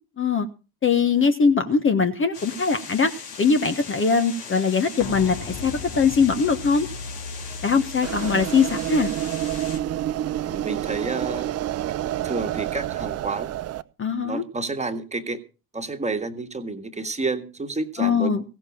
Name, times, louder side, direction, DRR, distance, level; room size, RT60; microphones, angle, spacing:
voice 1, 0.2-0.5 0.8-3.1 3.4-6.9 7.6-9.1 14.0-14.4 18.0-18.4, left 5 dB, 25° left, 8 dB, 1.2 m, -21 dB
sound 1, 2.3-9.8, left 6 dB, 70° left, 2.9 m, -39 dB
sound 2, 5.0-10.6 10.9-11.0, left 4 dB, 50° left, 2.2 m, -39 dB
sound 3, 8.0-13.8, right 12 dB, 30° right, 0.7 m, -28 dB
voice 2, 10.5-11.5 12.2-13.5 14.2-15.4 15.7-18.3, right 3 dB, 15° right, 6 dB, 1.8 m, -30 dB
16.0 x 7.1 x 7.2 m, 0.34 s
figure-of-eight pair, 60°, 49 cm